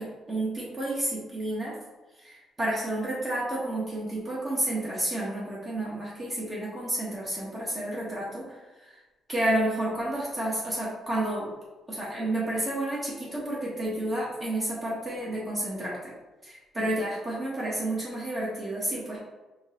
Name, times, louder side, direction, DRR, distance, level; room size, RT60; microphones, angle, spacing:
voice 1, 0.0-1.7 2.2-9.0 9.3-11.5 11.9-16.1 16.4-19.2, right 1 dB, 30° right, -6 dB, 1.2 m, -30 dB
3.9 x 2.9 x 3.6 m, 1.2 s
cardioid pair, 90°, 0 cm